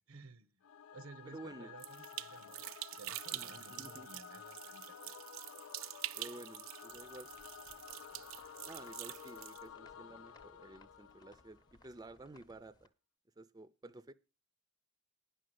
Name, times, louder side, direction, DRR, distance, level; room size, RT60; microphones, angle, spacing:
voice 1, 0.1-0.6 0.9-5.1, right 3 dB, 90° right, 0.9 m, -55 dB
Singing / Musical instrument, 0.6-11.9, left 8 dB, 80° left, 0.5 m, -53 dB
voice 2, 1.3-1.7 3.3-4.1 6.2-7.3 8.7-12.9 13.4-14.1, right 2 dB, 20° right, 0.5 m, -52 dB
sound 1, 1.8-9.6, right 15 dB, 70° right, 0.4 m, -46 dB
sound 2, 6.9-12.9, left 2 dB, 20° left, 0.8 m, -66 dB
10.0 x 6.4 x 7.7 m
head